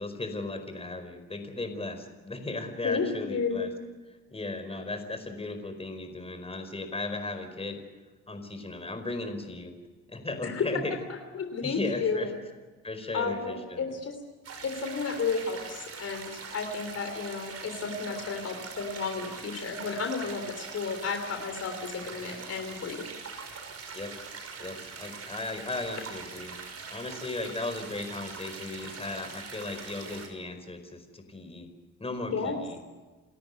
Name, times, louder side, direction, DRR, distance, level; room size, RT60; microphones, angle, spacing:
voice 1, 0.0-3.7 4.3-7.8 8.3-9.7 10.1-11.0 11.6-12.3 12.8-13.9 23.9-24.1 24.6-26.6 26.9-31.7 32.0-32.8, left 2 dB, 20° left, 7 dB, 4.9 m, -36 dB
voice 2, 2.8-3.8 10.4-10.6 11.1-12.4 13.1-14.2 14.6-23.0 32.3-32.6, left 5 dB, 55° left, 5 dB, 3.4 m, -32 dB
sound 1, 14.4-30.3, right 5 dB, 55° right, 5.5 m, -43 dB
29.5 x 13.5 x 9.5 m, 1.3 s
cardioid pair, 90°, 30 cm